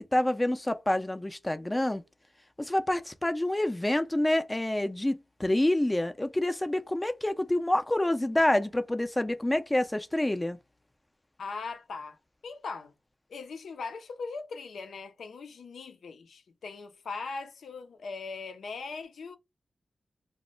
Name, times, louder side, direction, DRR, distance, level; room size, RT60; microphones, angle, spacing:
voice 1, 0.1-2.0 2.6-10.6, left 1 dB, 15° left, 0.4 m, -27 dB
voice 2, 11.4-12.2 12.4-12.9 13.3-19.4, left 4 dB, 85° left, 0.5 m, -40 dB
2.1 x 2.1 x 3.7 m
cardioid pair, 75°, 0 cm